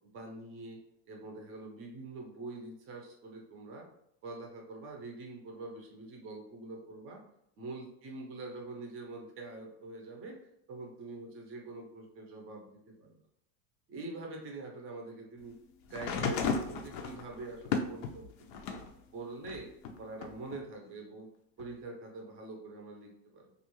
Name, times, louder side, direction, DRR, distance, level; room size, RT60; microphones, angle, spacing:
voice 1, 0.1-0.8 1.1-3.9 4.2-7.2 7.6-13.2 13.9-15.6 15.8-18.8 19.1-19.7 20.0-21.3 21.6-23.5, right 2 dB, 30° right, 1 dB, 0.4 m, -45 dB
sound 1, 15.9-18.9 19.4-20.6 21.6-21.7, left 5 dB, 85° left, 0.6 m, -35 dB
2.4 x 2.2 x 2.9 m, 0.76 s
supercardioid pair, 140°, 49 cm